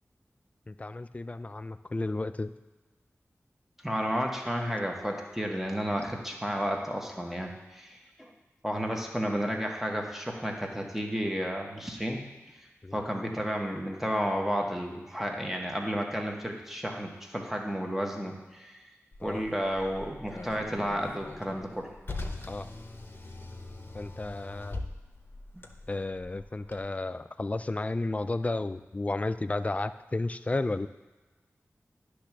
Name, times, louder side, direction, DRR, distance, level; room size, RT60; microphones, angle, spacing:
voice 1, 0.7-2.5 12.8-13.0 19.2-19.4 22.5-22.7 23.9-24.8 25.9-30.9, left 2 dB, 25° left, 11 dB, 0.3 m, -32 dB
voice 2, 3.8-8.3 8.6-12.3 12.9-18.8 19.2-21.9 25.5-25.6, equal, 5° right, 1 dB, 1.2 m, -32 dB
Car, 19.1-26.8, left 2 dB, 45° left, 0.8 m, -42 dB
10.0 x 3.3 x 6.0 m, 1.2 s
wide cardioid pair, 55°, 5 cm